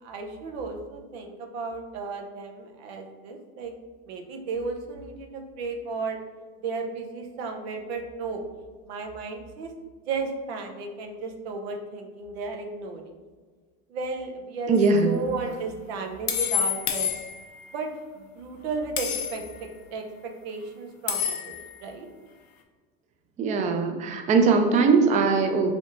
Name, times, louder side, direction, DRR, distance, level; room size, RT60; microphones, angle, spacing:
voice 1, 0.0-3.7 4.1-6.2 6.6-8.4 8.9-9.7 10.1-13.2 13.9-14.7 15.0-17.1 17.7-19.4 19.9-22.1, right 4 dB, 85° right, 3 dB, 0.7 m, -34 dB
voice 2, 14.7-15.2 23.4-25.7, right 4 dB, 25° right, 5 dB, 0.4 m, -21 dB
sound 1, 14.8-14.9 16.3-17.7 19.0-19.6 21.1-21.8, left 9 dB, 90° left, 0.7 m, -28 dB
4.1 x 3.4 x 2.5 m, 1.4 s
supercardioid pair, 110°, 31 cm